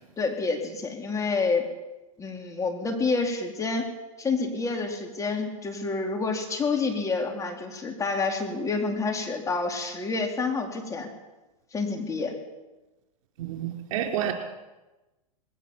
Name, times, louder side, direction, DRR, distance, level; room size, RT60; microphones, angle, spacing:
voice 1, 0.2-1.7 2.2-3.9 4.2-11.1 11.7-12.3, left 4 dB, 15° left, 2 dB, 4.2 m, -28 dB
voice 2, 13.4-14.3, right 10 dB, 65° right, 3 dB, 4.4 m, -29 dB
21.0 x 18.0 x 7.4 m, 1.1 s
hypercardioid pair, 110°, 18 cm